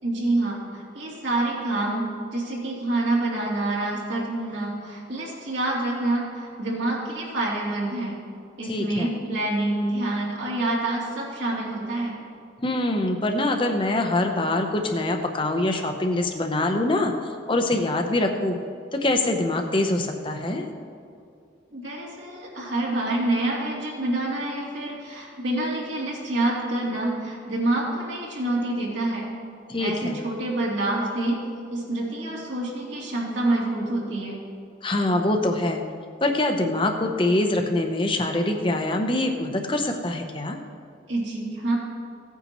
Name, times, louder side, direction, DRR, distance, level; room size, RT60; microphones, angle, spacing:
voice 1, 0.0-8.1 8.6-12.1 21.7-29.2 29.8-31.4 31.7-34.4 41.1-41.7, right 2 dB, 70° right, -5 dB, 2.9 m, -27 dB
voice 2, 8.7-9.1 12.6-17.1 17.5-18.6 18.9-20.6 29.7-30.2 34.8-35.8 36.2-40.6, left 2 dB, 25° left, 4 dB, 0.8 m, -24 dB
17.0 x 9.2 x 3.1 m, 2.4 s
head